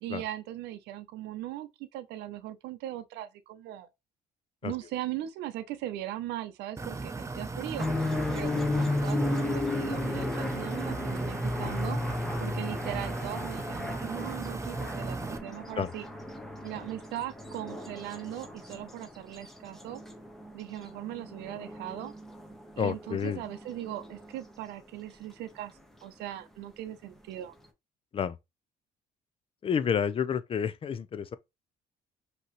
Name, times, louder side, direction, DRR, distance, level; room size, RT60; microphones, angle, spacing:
voice 1, 0.0-3.9 4.6-7.9 8.3-12.0 12.4-16.1 16.6-20.0 20.5-22.1 22.8-27.5, right 13 dB, 85° right, 0.6 m, -39 dB
sound 1, 6.8-15.4, right 3 dB, 15° right, 0.5 m, -36 dB
sound 2, 7.8-24.5, left 2 dB, ahead, 1.0 m, -35 dB
voice 2, 22.8-23.4 28.1-28.3 29.6-31.3, left 7 dB, 35° left, 0.5 m, -29 dB
5.5 x 3.0 x 3.1 m
cardioid pair, 110°, 17 cm